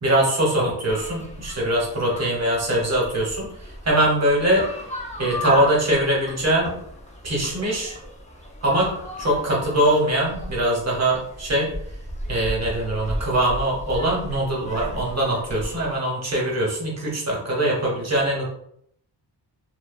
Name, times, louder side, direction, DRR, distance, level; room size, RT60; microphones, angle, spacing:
voice 1, 0.0-4.7 5.2-6.8 7.2-8.0 8.6-11.7 12.3-18.4, right 1 dB, 40° right, -2 dB, 0.8 m, -22 dB
sound 1, 0.9-16.0, equal, 20° left, 0.4 m, -36 dB
2.6 x 2.0 x 2.4 m, 0.70 s
wide cardioid pair, 120°, 42 cm